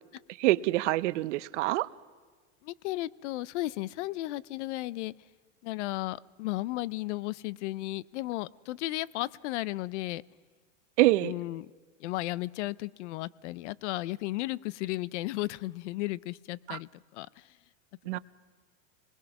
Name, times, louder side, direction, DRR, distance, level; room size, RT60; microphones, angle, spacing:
voice 1, 0.4-1.9 11.0-11.3 16.7-16.8 18.1-18.2, right 18 dB, 70° right, 17 dB, 0.7 m, -25 dB
voice 2, 2.6-5.1 5.6-10.2 11.2-11.7 12.0-17.3 18.1-18.2, left 18 dB, 70° left, 22 dB, 0.6 m, -34 dB
25.5 x 20.5 x 5.9 m, 1.4 s
supercardioid pair, 145°, 37 cm